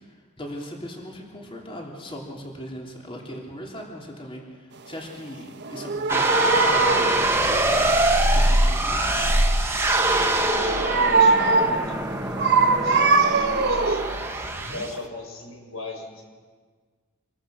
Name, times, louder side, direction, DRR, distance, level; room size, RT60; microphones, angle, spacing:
voice 1, 0.4-4.4 4.9-7.9 8.3-9.0, equal, 25° left, -1 dB, 3.2 m, -38 dB
sound 1, 5.6-7.2 10.4-11.9 12.4-14.2 14.7-14.9, right 4 dB, 55° right, 1.3 m, -21 dB
sound 2, 6.1-15.0, right 1 dB, 10° right, 1.7 m, -23 dB
voice 2, 10.4-14.1 14.7-16.2, left 2 dB, 85° left, 3 dB, 5.5 m, -39 dB
27.0 x 22.5 x 6.4 m, 1.5 s
head